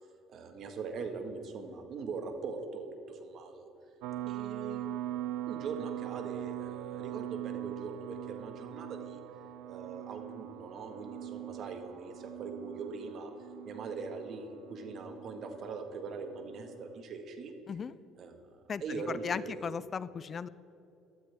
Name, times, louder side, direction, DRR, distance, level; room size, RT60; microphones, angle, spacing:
voice 1, 0.3-3.7 4.2-5.0 5.4-9.2 9.7-13.3 13.6-17.5 18.1-18.4 18.8-19.7, right 4 dB, 55° right, 6 dB, 1.6 m, -41 dB
sound 1, 4.0-17.0, right 13 dB, 85° right, 0.4 m, -42 dB
voice 2, 18.7-20.5, left 6 dB, 35° left, 17 dB, 0.3 m, -37 dB
15.5 x 12.5 x 3.5 m, 2.7 s
cardioid pair, 105°, 0 cm